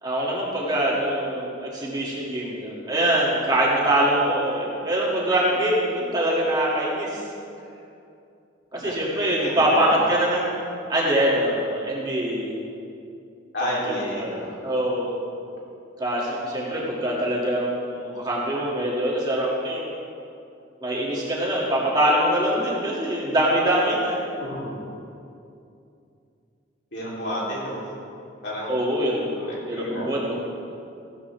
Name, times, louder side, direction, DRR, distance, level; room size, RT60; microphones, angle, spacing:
voice 1, 0.0-7.2 8.7-10.6 10.9-12.5 13.6-13.8 14.1-14.4 14.6-15.1 16.0-19.9 20.8-24.2 28.7-29.3 29.7-30.3, right 1 dB, 20° right, -6 dB, 2.5 m, -23 dB
voice 2, 9.4-10.0 13.5-14.6 24.4-24.8 26.9-27.8 28.4-28.7 29.4-30.1, equal, 60° left, -5 dB, 3.5 m, -31 dB
15.5 x 13.0 x 3.5 m, 2.6 s
head